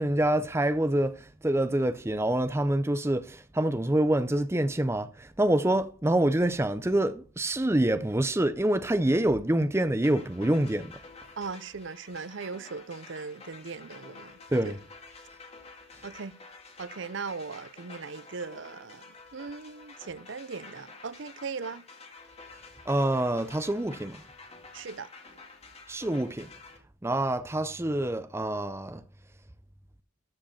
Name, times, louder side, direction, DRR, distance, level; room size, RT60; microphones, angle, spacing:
voice 1, 0.0-10.9 14.5-14.8 22.9-24.2 25.9-26.5 27.0-29.0, right 1 dB, 15° right, 0.5 m, -26 dB
sound 1, 10.0-26.8, left 3 dB, 30° left, 2.1 m, -50 dB
voice 2, 11.4-14.4 14.6-14.8 16.0-16.4 16.8-21.8 24.7-25.1, right 4 dB, 60° right, 0.6 m, -39 dB
13.5 x 5.2 x 5.7 m
head